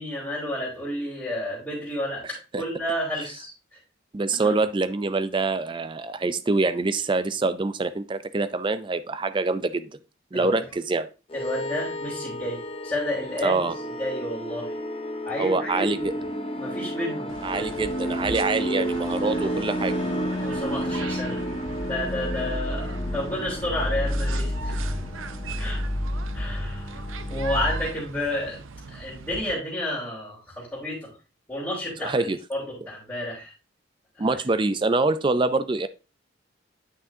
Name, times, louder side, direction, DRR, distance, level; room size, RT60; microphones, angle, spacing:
voice 1, 0.0-3.8 4.3-4.5 10.3-10.6 11.3-14.7 15.2-16.2 16.6-17.3 20.4-21.4 21.8-24.7 25.6-25.8 26.3-28.6 28.9-31.1 31.5-32.1 32.5-33.5 34.3-34.4, left 1 dB, 10° left, -10 dB, 3.0 m, -31 dB
voice 2, 2.2-2.6 4.1-9.9 10.3-11.1 13.4-13.7 15.4-16.1 17.4-20.0 32.0-32.4 34.2-35.9, right 3 dB, 25° right, 13 dB, 0.4 m, -25 dB
sound 1, 11.3-27.9, equal, 25° left, 0.6 m, -30 dB
sound 2, 17.3-29.5, right 5 dB, 75° right, 0.6 m, -40 dB
9.4 x 5.9 x 2.7 m, 0.31 s
head